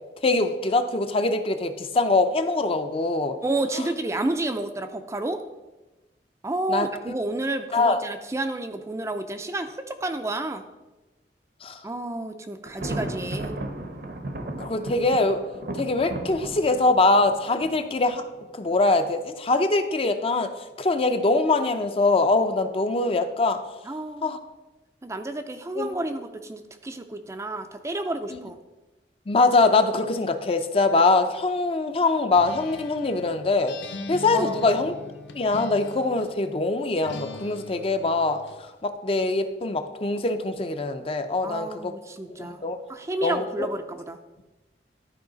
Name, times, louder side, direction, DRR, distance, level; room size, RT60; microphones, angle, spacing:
voice 1, 0.2-3.4 6.7-6.9 7.7-8.0 11.6-11.8 14.6-15.4 15.8-18.2 18.5-20.5 20.8-23.6 24.2-24.4 25.8-25.9 28.3-28.4 29.3-33.8 34.1-34.9 35.3-41.9 42.3-42.8 43.2-43.7, left 3 dB, 35° left, 8 dB, 0.5 m, -23 dB
voice 2, 3.4-5.4 6.4-10.6 11.8-13.5 23.8-24.4 25.0-28.6 34.3-34.8 41.4-42.6 42.9-44.2, right 2 dB, 15° right, 7 dB, 0.4 m, -30 dB
Thunder, 12.7-18.5, right 1 dB, 60° right, 0.8 m, -35 dB
Acoustic guitar, 32.3-36.4 37.0-38.6, left 2 dB, 80° left, 0.7 m, -41 dB
12.0 x 4.8 x 3.9 m, 1.1 s
head